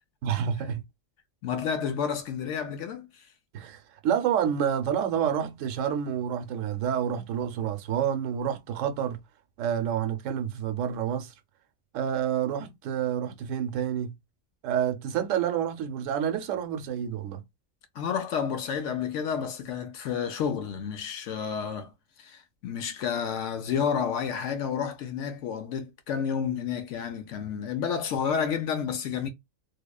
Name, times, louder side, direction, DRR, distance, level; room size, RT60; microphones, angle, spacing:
voice 1, 0.2-0.8 3.5-9.2 9.6-11.3 11.9-14.1 14.6-17.4, right 9 dB, 75° right, 0.9 m, -28 dB
voice 2, 1.4-3.3 17.9-21.9 22.2-29.3, left 7 dB, 70° left, 0.8 m, -30 dB
2.8 x 2.0 x 2.2 m
omnidirectional pair, 1.4 m